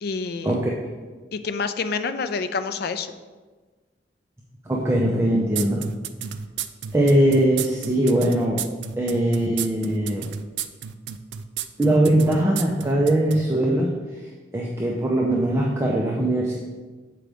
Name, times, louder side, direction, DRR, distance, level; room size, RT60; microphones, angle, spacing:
voice 1, 0.0-0.5 1.3-3.1, left 4 dB, 55° left, 10 dB, 0.4 m, -27 dB
voice 2, 4.7-5.9 6.9-8.7 9.0-10.3 11.8-13.9 14.5-16.6, right 1 dB, 15° right, -3 dB, 0.5 m, -21 dB
sound 1, 5.6-13.4, right 9 dB, 65° right, 0.3 m, -32 dB
7.5 x 5.0 x 3.4 m, 1.3 s
head